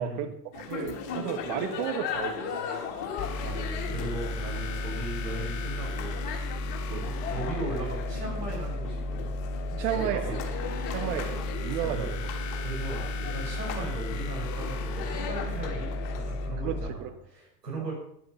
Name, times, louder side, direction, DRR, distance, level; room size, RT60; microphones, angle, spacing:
voice 1, 0.0-2.7 6.9-7.1 9.8-10.4 10.9-12.2 16.6-17.1, right 11 dB, 50° right, 9 dB, 1.7 m, -33 dB
sound 1, 0.5-16.5, left 6 dB, 55° left, 2.9 m, -38 dB
sound 2, 3.2-16.9, left 2 dB, 35° left, 1.5 m, -33 dB
voice 2, 3.4-6.2 6.9-9.3 9.7-10.4 10.7-11.0 11.8-12.2 12.6-17.9, right 2 dB, 85° right, -2 dB, 6.4 m, -38 dB
12.5 x 10.5 x 5.6 m, 0.71 s
figure-of-eight pair, 90°, 48 cm